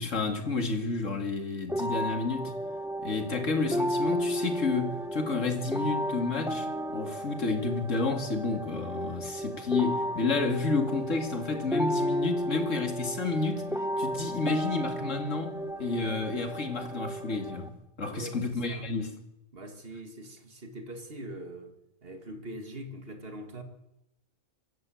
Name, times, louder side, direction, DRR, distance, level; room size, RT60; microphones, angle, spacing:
voice 1, 0.0-2.6 3.0-13.6 14.0-19.2, left 3 dB, 85° left, 2.7 m, -30 dB
sound 1, 1.7-17.7, equal, 5° right, 0.9 m, -33 dB
voice 2, 18.1-18.9 19.5-21.7 22.0-23.6, right 1 dB, 50° right, 2.5 m, -42 dB
25.5 x 14.0 x 7.8 m
omnidirectional pair, 1.3 m